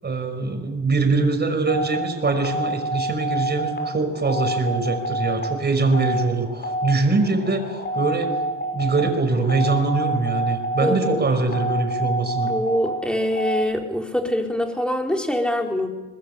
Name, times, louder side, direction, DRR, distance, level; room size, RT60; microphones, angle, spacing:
voice 1, 0.0-8.4 8.7-12.5, right 3 dB, 35° right, 6 dB, 5.5 m, -23 dB
sound 1, 1.7-13.6, right 1 dB, 35° left, 6.7 m, -28 dB
voice 2, 10.8-11.2 12.4-15.9, equal, 5° left, 2 dB, 4.2 m, -24 dB
22.0 x 21.0 x 8.4 m, 1.2 s
cardioid pair, 90°, 30 cm